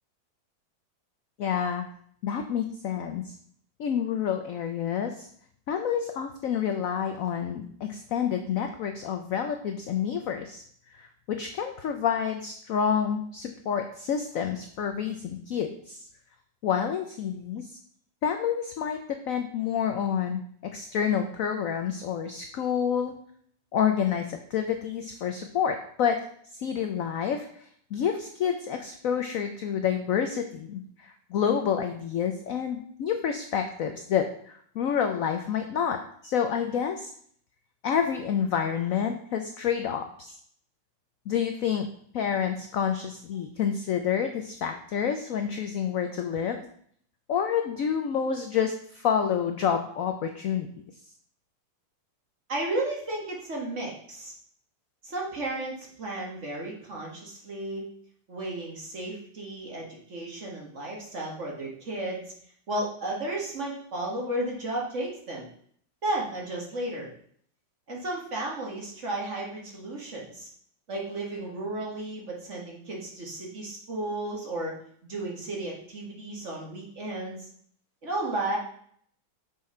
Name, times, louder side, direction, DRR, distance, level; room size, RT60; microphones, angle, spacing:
voice 1, 1.4-1.8 2.2-3.3 3.8-5.3 5.7-10.6 10.9-16.0 16.6-17.7 18.2-23.2 23.7-26.2 26.5-37.1 37.8-40.4 41.3-41.9 42.1-46.7 47.3-50.7, left 8 dB, 70° left, 6 dB, 0.8 m, -28 dB
voice 2, 52.5-54.3 55.0-57.9 58.3-62.2 62.7-65.5 66.0-67.1 67.9-70.5 70.9-74.8 75.1-77.5 78.0-78.6, right 2 dB, 40° right, -2 dB, 1.8 m, -33 dB
6.4 x 5.5 x 4.3 m, 0.62 s
omnidirectional pair, 2.1 m